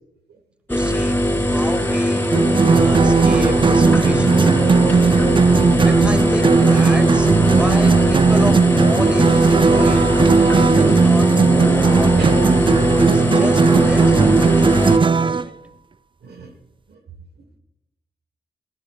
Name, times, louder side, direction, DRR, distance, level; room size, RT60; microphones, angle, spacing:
sound 1, 0.7-15.0, left 1 dB, 10° left, 2.6 m, -20 dB
voice 1, 0.7-2.3 2.7-4.5 5.6-7.3 7.5-10.0 10.5-11.3 11.5-12.2 12.5-15.5, equal, 5° right, 7 dB, 1.9 m, -31 dB
sound 2, 2.3-15.4, right 5 dB, 30° right, 0.4 m, -16 dB
voice 2, 7.4-7.7 12.2-12.4 16.2-16.6 16.9-17.0, right 5 dB, 70° right, 8 dB, 1.2 m, -32 dB
18.5 x 12.5 x 2.2 m, 0.85 s
supercardioid pair, 45°, 17 cm